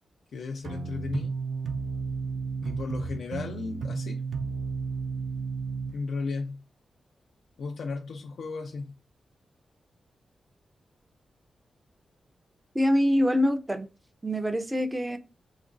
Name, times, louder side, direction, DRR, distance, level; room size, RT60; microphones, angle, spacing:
voice 1, 0.3-1.4 2.6-4.2 5.9-6.6 7.6-8.9, left 4 dB, 75° left, 0.4 m, -34 dB
sound 1, 0.6-6.0, right 5 dB, 75° right, 0.5 m, -33 dB
voice 2, 12.8-13.9 14.2-15.2, equal, 15° right, 0.4 m, -24 dB
2.9 x 2.5 x 3.7 m
wide cardioid pair, 155°, 0 cm